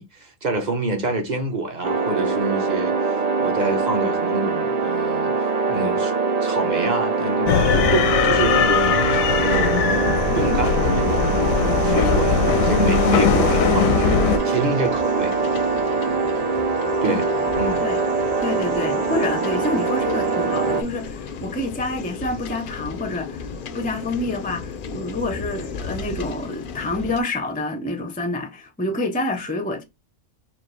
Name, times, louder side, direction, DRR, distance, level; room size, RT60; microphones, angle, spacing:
voice 1, 0.0-6.1 6.4-10.0 10.3-15.3 17.0-17.3 17.6-17.9, right 3 dB, 35° right, 0.9 m, -27 dB
sound 1, 1.8-20.8, right 4 dB, 65° right, 0.3 m, -23 dB
sound 2, 7.5-14.4, left 7 dB, 85° left, 1.0 m, -20 dB
sound 3, 14.3-27.2, left 5 dB, 60° left, 0.5 m, -35 dB
voice 2, 17.0-17.5 17.8-18.0 18.4-23.5 23.7-29.8, left 2 dB, 15° left, 0.3 m, -28 dB
4.4 x 2.6 x 3.1 m
omnidirectional pair, 1.4 m